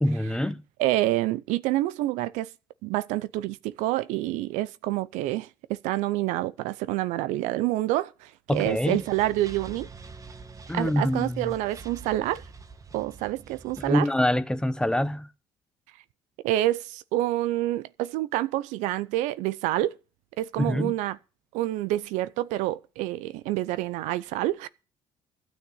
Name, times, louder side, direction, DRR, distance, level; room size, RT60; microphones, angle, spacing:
voice 1, 0.0-0.6 8.5-9.0 10.7-11.5 13.8-15.3 20.6-20.9, left 1 dB, 5° left, 0.8 m, -25 dB
voice 2, 0.8-2.5 2.8-9.9 10.7-12.4 12.9-14.1 16.4-20.0 20.4-21.2 21.5-24.7, right 15 dB, 85° right, 0.6 m, -27 dB
sound 1, 8.5-13.9, right 4 dB, 30° right, 1.3 m, -46 dB
12.5 x 6.4 x 8.4 m
cardioid pair, 95°, 12 cm